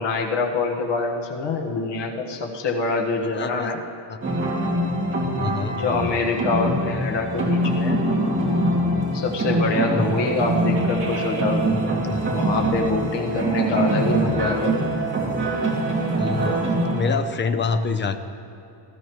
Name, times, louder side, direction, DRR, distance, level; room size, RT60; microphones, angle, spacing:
voice 1, 0.0-3.8 5.7-8.0 9.1-11.8 12.3-14.8 17.0-17.1, left 3 dB, 65° left, 2 dB, 1.6 m, -25 dB
voice 2, 3.3-3.7 4.1-4.2 5.4-5.8 12.2-12.3 13.7-13.8 16.2-18.2, left 4 dB, 25° left, 8 dB, 0.6 m, -26 dB
sound 1, 4.2-17.0, right 1 dB, 25° right, 2.5 m, -24 dB
sound 2, 10.0-16.9, right 11 dB, 50° right, 2.5 m, -33 dB
18.5 x 14.5 x 3.1 m, 2.9 s
cardioid pair, 160°, 45 cm